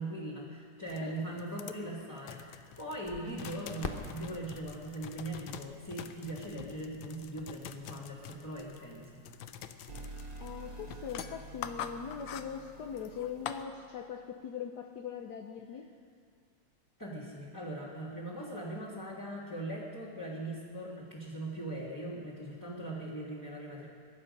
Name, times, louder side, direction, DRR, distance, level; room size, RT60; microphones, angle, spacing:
voice 1, 0.0-9.1 17.0-23.9, right 1 dB, 10° left, -6 dB, 1.9 m, -40 dB
sound 1, 0.9-13.6, left 9 dB, 85° left, 1.5 m, -46 dB
Crackle, 3.0-9.6, left 3 dB, 35° left, 0.9 m, -48 dB
sound 2, 9.9-14.1, right 2 dB, 85° right, 2.7 m, -48 dB
voice 2, 10.4-15.9, left 7 dB, 70° left, 4 dB, 1.3 m, -41 dB
23.0 x 11.5 x 5.3 m, 2.1 s
omnidirectional pair, 2.0 m